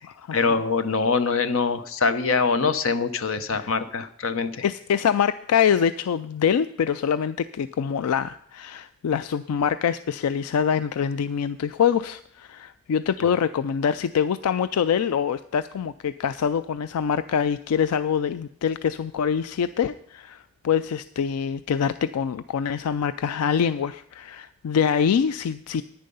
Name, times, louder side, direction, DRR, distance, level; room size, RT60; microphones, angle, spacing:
voice 1, 0.3-4.6, left 4 dB, 65° left, 11 dB, 0.8 m, -24 dB
voice 2, 4.6-25.8, left 7 dB, 85° left, 14 dB, 0.4 m, -24 dB
10.0 x 9.7 x 5.4 m, 0.63 s
head